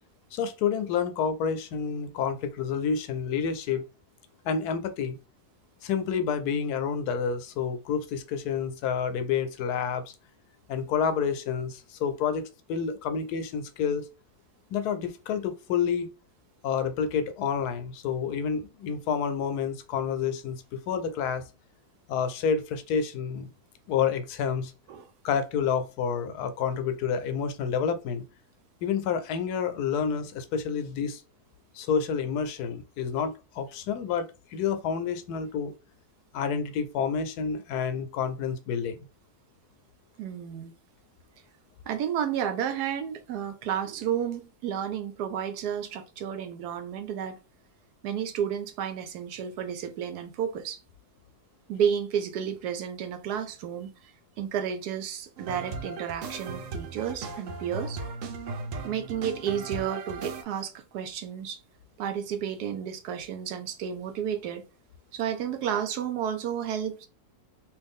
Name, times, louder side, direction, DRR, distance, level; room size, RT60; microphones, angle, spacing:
voice 1, 0.3-3.8 4.4-5.2 5.8-10.1 10.7-14.1 14.7-16.1 16.6-21.4 22.1-23.5 23.9-24.7 25.2-28.2 28.8-31.2 31.7-35.7 36.3-39.0, left 7 dB, 85° left, 1.1 m, -29 dB
voice 2, 40.2-40.7 41.9-47.4 48.0-50.8 51.7-54.1 54.4-58.0 58.8-61.6 62.0-64.6 65.1-67.1, right 8 dB, 85° right, 1.2 m, -31 dB
sound 1, 55.4-60.4, right 4 dB, 65° right, 0.9 m, -37 dB
3.1 x 2.6 x 3.5 m
omnidirectional pair, 1.7 m